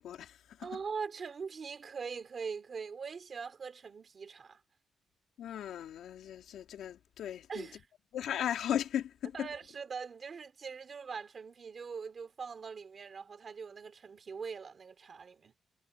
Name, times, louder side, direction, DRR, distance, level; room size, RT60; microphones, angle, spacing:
voice 1, 0.0-0.7 5.4-7.7 8.1-9.5, left 10 dB, 85° left, 2.9 m, -37 dB
voice 2, 0.6-4.6 7.5-7.9 9.3-15.5, right 5 dB, 35° right, 2.8 m, -42 dB
wide cardioid pair, 170°, 0 cm